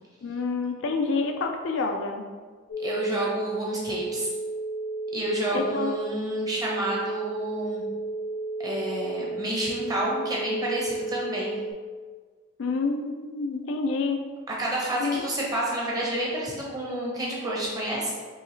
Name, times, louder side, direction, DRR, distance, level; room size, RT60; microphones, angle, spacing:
voice 1, 0.2-2.2 5.5-5.9 12.6-14.2 15.0-15.2, left 4 dB, 60° left, 4 dB, 0.4 m, -28 dB
sound 1, 2.7-11.7, right 2 dB, 80° left, 0.9 m, -33 dB
voice 2, 2.8-4.3 5.1-7.8 8.6-11.6 14.6-18.1, right 1 dB, 20° right, -4 dB, 0.9 m, -29 dB
4.6 x 3.0 x 3.1 m, 1.5 s
head